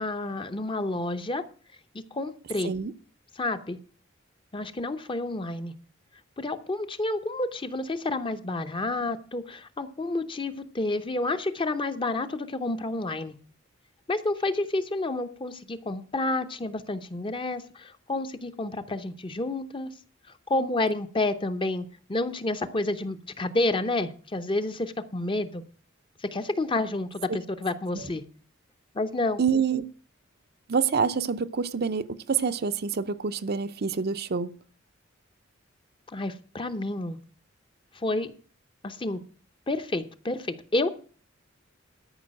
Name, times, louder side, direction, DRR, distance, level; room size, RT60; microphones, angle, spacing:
voice 1, 0.0-1.5 2.1-2.7 3.4-3.8 4.5-5.7 6.4-13.3 14.1-19.9 20.5-25.6 26.3-28.2 28.9-29.4 36.1-37.2 37.9-38.3 38.8-39.2 39.7-40.9, left 2 dB, 25° left, 0.8 m, -29 dB
voice 2, 29.4-29.9 30.7-34.5, right 6 dB, 50° right, 0.6 m, -27 dB
13.0 x 5.5 x 7.4 m
head